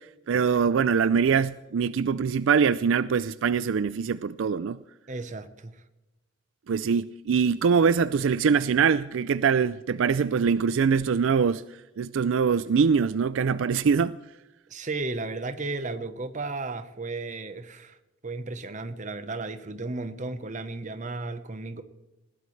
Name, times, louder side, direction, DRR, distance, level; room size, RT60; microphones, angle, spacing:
voice 1, 0.3-4.8 6.7-11.6 12.0-14.1, right 6 dB, 70° right, 0.4 m, -23 dB
voice 2, 5.1-5.7 14.7-18.0 18.2-21.8, right 3 dB, 40° right, 1.0 m, -34 dB
20.5 x 16.0 x 3.3 m
head